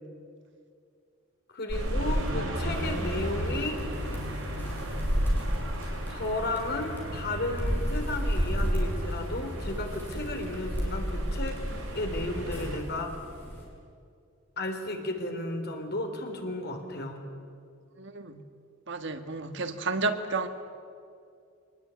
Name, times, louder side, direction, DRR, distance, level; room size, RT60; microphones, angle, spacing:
voice 1, 1.5-3.8 6.1-11.6 11.9-13.1 14.6-17.2, left 2 dB, 55° left, 4 dB, 3.6 m, -33 dB
sound 1, 1.7-12.8, equal, 85° right, 6.3 m, -31 dB
sound 2, 2.7-13.7, equal, 10° left, 6.4 m, -39 dB
voice 2, 18.0-18.5 18.9-20.5, right 3 dB, 60° right, 8 dB, 1.7 m, -31 dB
25.0 x 19.5 x 9.6 m, 2.4 s
head